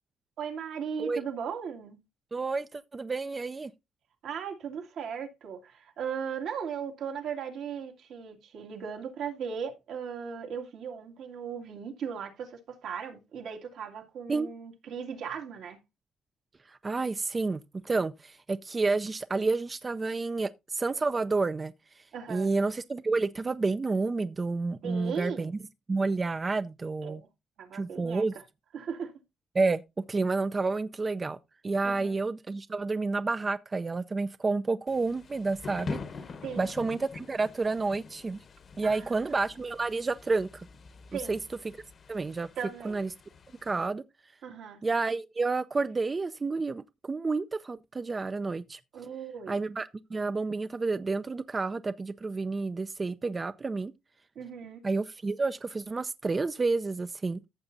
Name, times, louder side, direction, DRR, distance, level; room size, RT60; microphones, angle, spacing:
voice 1, 0.4-2.0 4.2-15.8 22.1-22.5 24.8-25.5 27.0-27.2 27.6-28.3 28.7-29.1 31.8-32.2 36.4-36.7 38.8-39.2 41.1-41.4 42.6-43.0 44.4-44.8 48.9-49.6 54.4-54.8, right 7 dB, 75° right, 2.2 m, -37 dB
voice 2, 2.3-3.7 14.3-14.5 16.7-22.0 22.3-25.6 25.9-27.2 27.7-28.3 29.5-29.8 30.1-31.4 31.6-36.0 36.6-38.4 38.8-40.7 41.1-41.4 42.1-42.5 42.8-43.1 43.6-44.0 44.8-48.8 49.5-53.9 54.8-57.4, right 3 dB, 30° right, 0.5 m, -30 dB
Thunder / Rain, 34.9-43.9, left 4 dB, 50° left, 1.1 m, -45 dB
14.5 x 7.0 x 2.6 m
cardioid pair, 90°, 0 cm